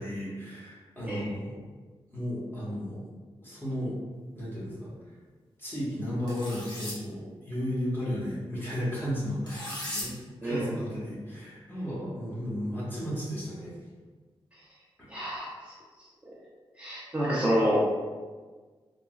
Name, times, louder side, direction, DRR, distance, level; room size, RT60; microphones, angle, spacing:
voice 1, 0.0-1.5 2.1-3.0 3.4-3.9 4.3-4.9 5.6-13.7 15.0-15.1, equal, 20° left, -8 dB, 1.4 m, -34 dB
sound 1, 6.3-6.9 9.5-10.1, left 1 dB, 45° left, 1.1 m, -37 dB
voice 2, 15.1-15.5 16.8-17.8, equal, 15° right, -8 dB, 0.6 m, -27 dB
3.6 x 2.9 x 2.4 m, 1.4 s
wide cardioid pair, 95°, 10 cm